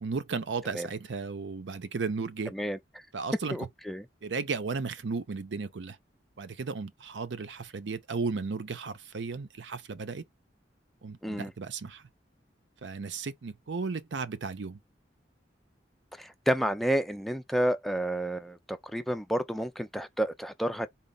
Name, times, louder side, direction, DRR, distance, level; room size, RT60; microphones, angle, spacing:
voice 1, 0.0-2.5 3.1-3.7 4.2-6.0 6.4-10.2 11.0-12.1 12.8-14.8, right 4 dB, 80° right, 0.6 m, -35 dB
voice 2, 3.5-4.0 11.2-11.5 16.2-20.9, equal, ahead, 0.3 m, -30 dB
4.2 x 2.0 x 3.7 m
head